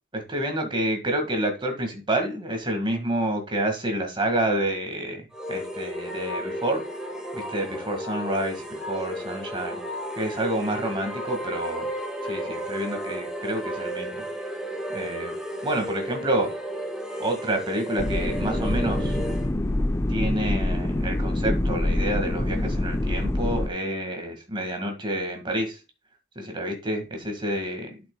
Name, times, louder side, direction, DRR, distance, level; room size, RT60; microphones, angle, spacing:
voice 1, 0.1-6.8 7.3-9.8 10.2-11.9 12.3-14.2 14.9-15.3 15.6-16.5 17.2-19.1 20.1-25.8 26.4-28.0, right 1 dB, 25° right, 3 dB, 1.8 m, -28 dB
sound 1, 5.3-19.5, equal, 5° right, 1.0 m, -33 dB
sound 2, 18.0-23.7, left 1 dB, 15° left, 0.4 m, -25 dB
11.5 x 6.0 x 2.3 m, 0.28 s
head